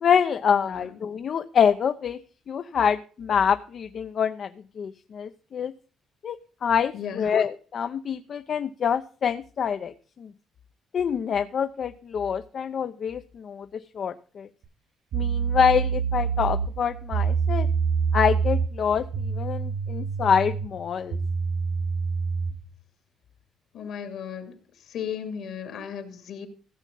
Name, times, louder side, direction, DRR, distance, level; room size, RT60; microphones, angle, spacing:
voice 1, 0.0-2.2 2.5-4.5 4.8-5.7 6.2-10.3 10.9-13.7 13.9-14.5 15.1-17.7 18.1-21.2, left 7 dB, 55° left, 0.6 m, -26 dB
voice 2, 0.6-0.9 6.9-7.3 23.7-24.6 24.9-26.5, left 8 dB, 75° left, 2.5 m, -35 dB
sound 1, 14.6-14.7 15.1-22.6, right 6 dB, 90° right, 6.6 m, -27 dB
15.5 x 7.3 x 5.4 m
cardioid pair, 90°, 0 cm